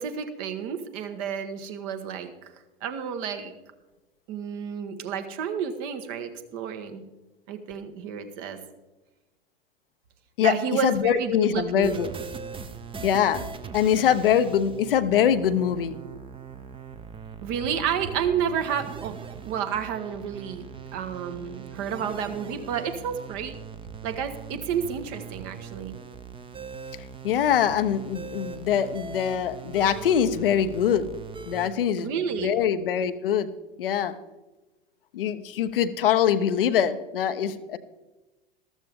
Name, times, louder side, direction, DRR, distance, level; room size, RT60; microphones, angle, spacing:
voice 1, 0.0-2.3 2.8-3.5 4.3-7.0 7.5-8.6 10.4-11.9 17.4-19.1 19.5-23.5 24.0-25.9 32.0-32.6, right 7 dB, 50° right, 8 dB, 1.4 m, -30 dB
voice 2, 10.8-12.1 13.0-13.4 13.7-16.0 27.2-31.1 31.5-32.1 32.4-33.5 33.8-34.2 35.1-37.8, left 9 dB, 65° left, 11 dB, 0.8 m, -23 dB
sound 1, 11.8-31.7, right 6 dB, 20° right, 0.9 m, -41 dB
13.5 x 13.0 x 3.6 m, 1.1 s
figure-of-eight pair, 85°, 29 cm